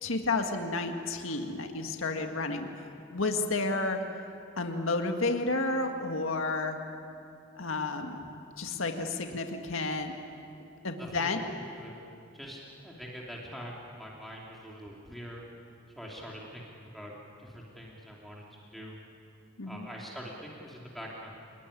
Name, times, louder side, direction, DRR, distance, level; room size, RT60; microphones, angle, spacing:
voice 1, 0.0-2.7 3.1-4.0 4.6-6.8 7.6-8.2 8.6-10.1 10.8-11.4 19.6-19.9, left 3 dB, 85° left, 4 dB, 1.9 m, -31 dB
voice 2, 11.0-11.3 11.7-12.0 12.3-15.4 15.9-17.1 17.4-19.0 19.6-21.3, equal, ahead, -3 dB, 3.0 m, -44 dB
28.0 x 20.5 x 10.0 m, 2.7 s
head